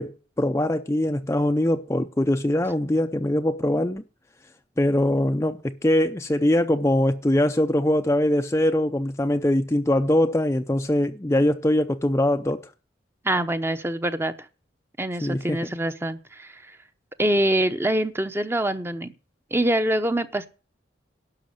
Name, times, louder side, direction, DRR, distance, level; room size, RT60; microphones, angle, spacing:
voice 1, 0.0-4.0 4.8-12.6 15.2-15.7, left 1 dB, 15° left, 0.5 m, -22 dB
voice 2, 13.2-14.3 15.0-16.8 17.2-19.1 19.5-20.5, right 1 dB, 15° right, 0.8 m, -25 dB
12.0 x 5.9 x 8.4 m
head